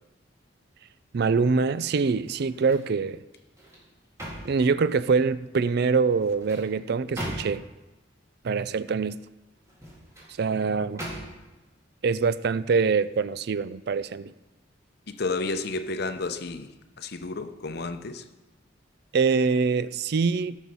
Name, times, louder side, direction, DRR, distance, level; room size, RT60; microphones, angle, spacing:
voice 1, 1.1-3.2 4.4-7.6 8.4-9.2 10.4-11.0 12.0-14.3 19.1-20.6, right 5 dB, 60° right, 0.4 m, -24 dB
sound 1, 2.2-2.9 3.4-5.3 6.1-7.8 9.6-10.3 11.0-11.6 12.1-12.3, equal, 15° right, 3.6 m, -40 dB
voice 2, 15.1-16.7 17.0-18.2, left 3 dB, 60° left, 0.7 m, -31 dB
16.5 x 6.4 x 5.5 m
head